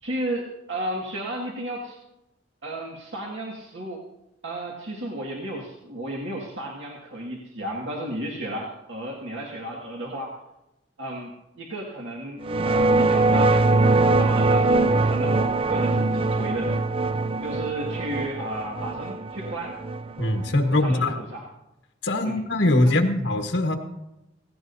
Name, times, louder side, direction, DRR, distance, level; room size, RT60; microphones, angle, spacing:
voice 1, 0.0-2.0 2.6-4.0 4.4-10.4 11.0-16.7 17.4-19.7 20.7-21.4 22.2-22.4 22.8-23.0, right 1 dB, 85° right, -3 dB, 2.0 m, -33 dB
sound 1, 12.4-21.1, right 2 dB, 30° right, 0.4 m, -22 dB
voice 2, 20.2-21.2 22.0-23.7, left 1 dB, 85° left, 4 dB, 1.4 m, -22 dB
17.0 x 16.5 x 2.7 m, 0.91 s
head